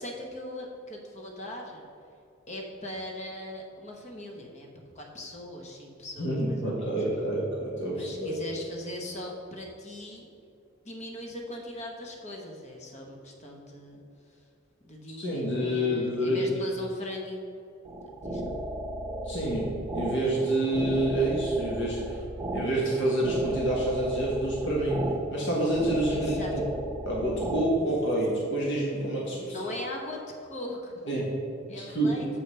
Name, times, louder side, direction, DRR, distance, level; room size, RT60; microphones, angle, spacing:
voice 1, 0.0-1.9 2.5-4.7 4.9-6.9 7.9-10.3 10.8-14.0 14.8-17.5 18.2-18.4 26.1-26.5 29.4-31.2 31.7-32.3, left 1 dB, 35° left, 1 dB, 1.1 m, -39 dB
voice 2, 6.2-8.3 15.2-16.4 19.2-22.2 22.5-25.0 25.3-26.6 27.0-29.6 31.1-31.3 31.7-32.1, right 1 dB, 60° left, -4 dB, 1.5 m, -28 dB
sound 1, 17.8-27.6, right 1 dB, 15° right, 1.1 m, -35 dB
7.3 x 5.1 x 5.6 m, 2.5 s
head